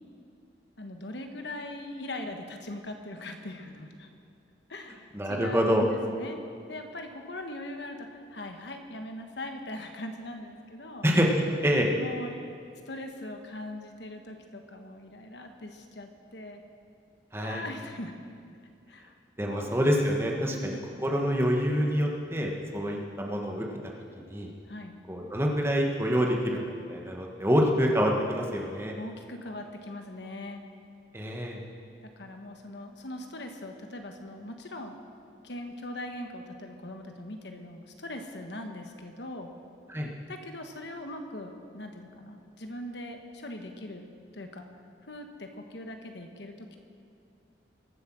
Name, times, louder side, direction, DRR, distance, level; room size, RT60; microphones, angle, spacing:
voice 1, 0.8-4.1 4.7-6.4 6.7-11.1 12.0-16.6 17.4-18.1 18.9-19.1 19.5-19.7 20.5-20.9 24.7-25.0 28.9-30.6 32.0-35.0 35.4-39.5 40.3-44.1 44.3-44.7 45.1-46.8, left 1 dB, 70° left, 5 dB, 1.2 m, -41 dB
voice 2, 5.1-5.8 11.0-11.3 11.6-11.9 17.3-17.6 19.4-20.7 21.0-23.7 24.3-24.5 25.1-28.9 31.1-31.6 39.9-40.1, equal, 15° right, 0 dB, 1.3 m, -26 dB
22.5 x 8.1 x 6.2 m, 2.4 s
head